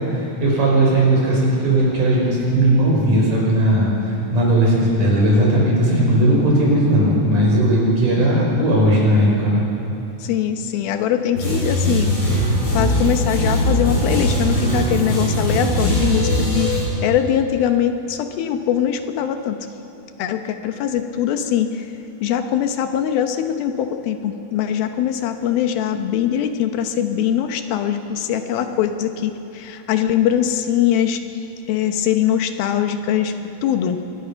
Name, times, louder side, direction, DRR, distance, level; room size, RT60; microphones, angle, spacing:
voice 1, 0.1-3.9 4.3-9.6, right 1 dB, 60° right, -4 dB, 6.8 m, -17 dB
voice 2, 10.2-12.2 12.7-19.6 20.2-21.9 22.2-31.2 31.7-33.3 33.6-34.0, left 10 dB, 90° left, 7 dB, 2.9 m, -22 dB
sound 1, 11.4-16.8, equal, 40° left, 6.1 m, -20 dB
24.5 x 20.0 x 5.9 m, 3.0 s
omnidirectional pair, 4.2 m